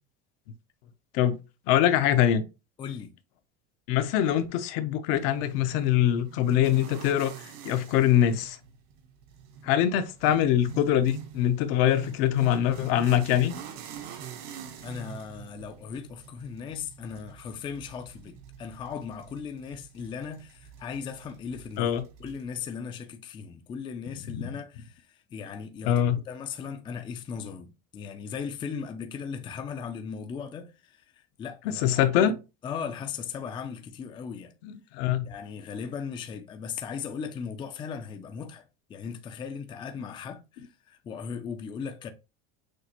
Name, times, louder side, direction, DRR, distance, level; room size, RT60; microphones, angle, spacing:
voice 1, 1.7-2.4 3.9-7.3 7.6-8.6 9.6-13.5 21.8-22.0 24.3-24.4 25.8-26.2 31.8-32.3 34.6-35.3, left 11 dB, 70° left, 0.8 m, -23 dB
voice 2, 2.8-3.1 14.8-21.9 22.2-32.4 32.6-34.5 35.2-42.1, left 6 dB, 15° left, 0.3 m, -38 dB
sound 1, 5.1-22.4, right 8 dB, 75° right, 1.0 m, -45 dB
6.4 x 2.4 x 2.9 m
cardioid pair, 150°, 31 cm